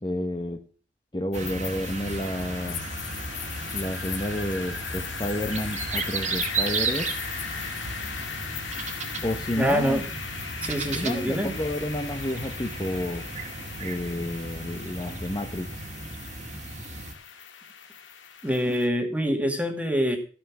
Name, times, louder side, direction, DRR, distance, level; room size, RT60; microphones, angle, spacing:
voice 1, 0.0-0.6 1.1-2.8 3.7-7.1 9.2-10.0 10.9-13.2 13.8-15.7, left 1 dB, 25° left, 5 dB, 0.9 m, -30 dB
sound 1, 1.3-18.9, left 7 dB, 75° left, 1.9 m, -38 dB
sound 2, 1.3-17.1, right 4 dB, 40° right, 1.8 m, -35 dB
voice 2, 9.6-10.0 10.6-11.5 18.4-20.2, equal, 5° right, 5 dB, 1.9 m, -25 dB
15.0 x 5.7 x 7.3 m, 0.41 s
head